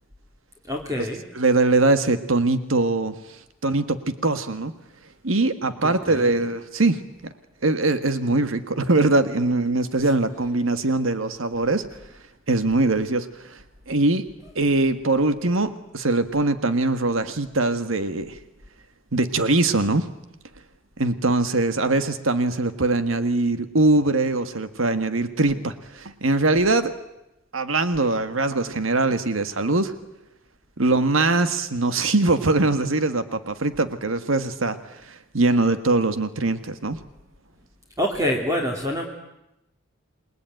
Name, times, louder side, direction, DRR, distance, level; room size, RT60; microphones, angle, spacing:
voice 1, 0.7-1.2 5.8-6.4 38.0-39.1, equal, 15° right, 0 dB, 3.1 m, -26 dB
voice 2, 1.3-3.1 3.6-4.7 5.2-7.0 7.6-11.8 12.5-13.6 13.9-14.2 14.5-18.4 19.1-20.1 21.0-26.9 27.5-29.9 30.8-34.8 35.1-37.0, right 2 dB, 80° right, 10 dB, 1.7 m, -22 dB
28.5 x 21.0 x 9.3 m, 0.90 s
head